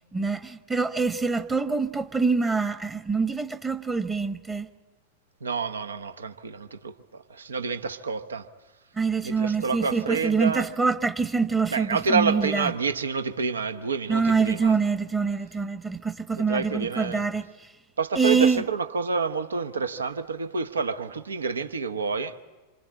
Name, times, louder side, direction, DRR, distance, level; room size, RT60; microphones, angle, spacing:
voice 1, 0.1-4.7 9.0-12.7 14.1-17.5 18.2-18.6, right 4 dB, 15° right, 1.1 m, -25 dB
voice 2, 5.4-8.5 9.2-10.7 11.7-14.7 16.3-17.3 18.0-22.3, right 5 dB, 70° right, 1.0 m, -28 dB
27.0 x 25.0 x 8.6 m
figure-of-eight pair, 90°, 0 cm